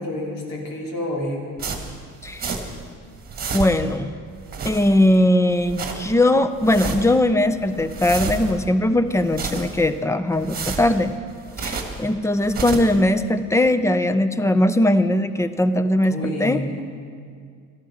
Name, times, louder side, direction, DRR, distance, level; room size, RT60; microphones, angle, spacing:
voice 1, 0.0-1.4 16.0-16.8, left 1 dB, 85° left, -1 dB, 2.9 m, -29 dB
sound 1, 1.6-2.9 3.1-4.0 4.4-5.2 5.5-6.1 6.5-7.2 7.6-8.7 9.1-9.9 10.3-12.0 12.4-13.0, right 4 dB, 30° right, 1.4 m, -31 dB
voice 2, 2.2-2.6 3.5-4.1 4.6-11.1 11.6-16.6, left 1 dB, 10° left, 12 dB, 0.4 m, -20 dB
13.0 x 12.5 x 5.7 m, 2.1 s
cardioid pair, 135°, 33 cm